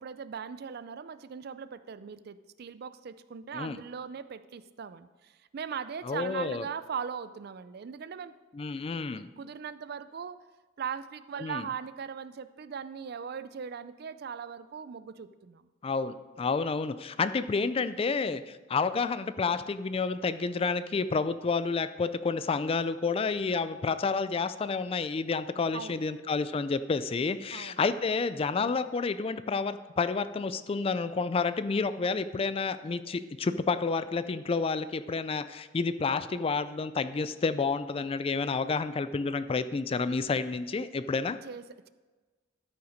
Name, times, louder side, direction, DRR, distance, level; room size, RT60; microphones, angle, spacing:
voice 1, 0.0-8.3 9.4-10.4 10.8-15.7 25.7-26.0 27.5-27.8 41.4-41.9, right 7 dB, 55° right, 14 dB, 0.4 m, -39 dB
voice 2, 6.0-6.7 8.5-9.3 11.4-11.7 15.8-41.4, left 4 dB, 30° left, 13 dB, 0.3 m, -30 dB
13.0 x 5.7 x 5.1 m, 1.3 s
head